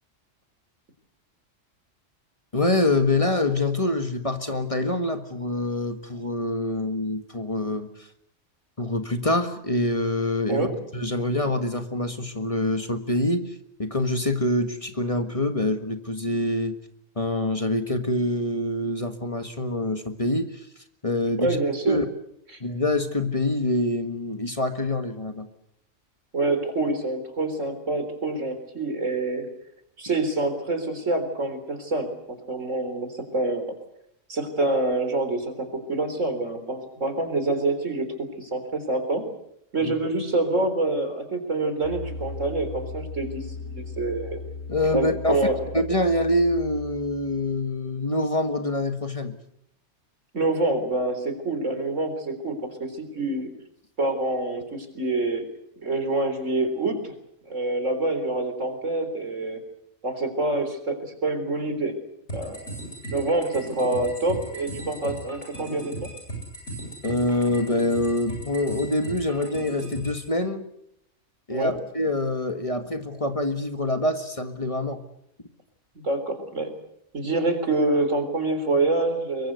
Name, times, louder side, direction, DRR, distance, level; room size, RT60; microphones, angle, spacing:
voice 1, 2.5-7.9 8.8-10.7 10.9-16.8 17.2-20.6 21.0-21.6 21.9-22.0 22.6-25.5 39.8-39.9 44.7-45.4 45.7-49.3 67.0-70.6 71.5-75.0, left 1 dB, 25° left, 7 dB, 1.6 m, -25 dB
voice 2, 21.4-22.0 22.5-22.6 26.3-29.5 30.0-33.7 34.3-39.2 39.7-44.4 44.9-45.6 50.3-53.5 54.0-55.5 55.8-57.1 57.5-59.6 60.0-62.0 62.3-62.6 63.1-66.1 71.5-71.7 76.0-76.8 77.1-79.5, right 2 dB, 80° right, 8 dB, 4.2 m, -26 dB
sound 1, 41.8-47.6, left 3 dB, 90° left, 8.5 m, -37 dB
sound 2, 62.3-70.3, right 2 dB, 65° left, 8.5 m, -37 dB
24.0 x 23.0 x 8.1 m, 0.76 s
omnidirectional pair, 1.3 m